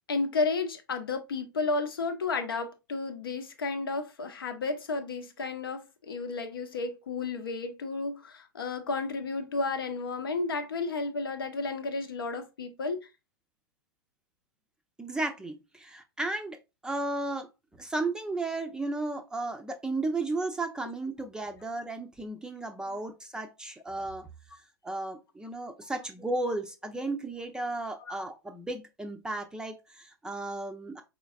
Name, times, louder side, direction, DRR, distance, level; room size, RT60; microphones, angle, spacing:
voice 1, 0.1-13.1 28.0-28.2, left 3 dB, 70° left, 0.8 m, -32 dB
voice 2, 15.0-16.6 16.8-24.3 24.8-31.0, right 2 dB, 5° right, 0.5 m, -34 dB
4.4 x 3.9 x 2.4 m
figure-of-eight pair, 100°, 13 cm